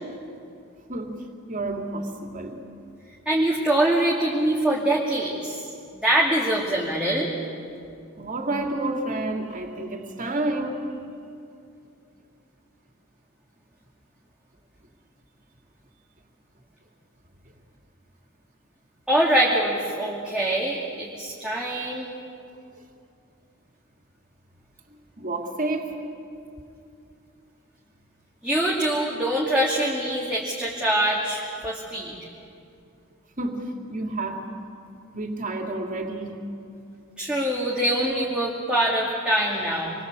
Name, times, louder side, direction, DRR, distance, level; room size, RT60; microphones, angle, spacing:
voice 1, 0.9-2.6 8.2-10.9 24.9-26.0 33.4-34.5 35.1-36.5, right 2 dB, 35° right, 3 dB, 2.8 m, -30 dB
voice 2, 3.3-5.6 6.0-7.3 19.1-22.1 28.4-32.1 37.2-39.9, right 1 dB, 5° right, -5 dB, 2.6 m, -24 dB
27.5 x 22.5 x 8.4 m, 2.6 s
head